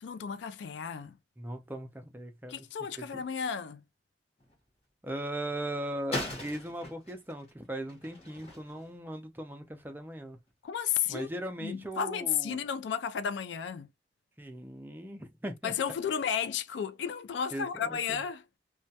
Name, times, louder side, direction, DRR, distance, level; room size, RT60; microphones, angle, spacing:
voice 1, 0.0-1.2 2.5-3.8 10.6-11.3 11.6-13.9 15.6-18.4, left 8 dB, 80° left, 0.3 m, -33 dB
voice 2, 1.4-2.6 3.0-3.2 5.0-10.4 11.1-12.6 14.4-15.7 17.5-18.2, right 1 dB, 10° right, 0.4 m, -39 dB
sound 1, 4.4-4.6 6.1-8.9, left 1 dB, 35° left, 0.9 m, -39 dB
2.3 x 2.1 x 2.6 m
head